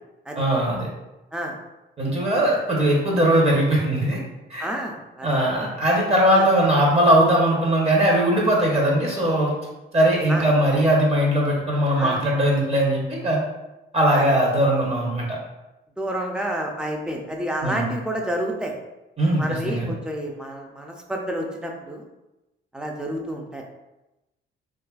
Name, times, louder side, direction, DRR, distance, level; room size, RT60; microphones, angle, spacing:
voice 1, 0.3-0.9 2.0-4.2 4.5-4.6 5.2-9.5 9.9-13.4 13.9-15.3 17.6-17.9 19.2-19.9, right 1 dB, 30° right, -3 dB, 0.8 m, -20 dB
voice 2, 4.6-5.4 6.3-6.5 10.3-10.5 12.0-12.2 14.1-14.2 16.0-18.7 19.4-22.0 22.7-23.6, right 1 dB, 5° right, 1 dB, 0.4 m, -29 dB
2.6 x 2.4 x 2.3 m, 0.99 s
cardioid pair, 90°, 20 cm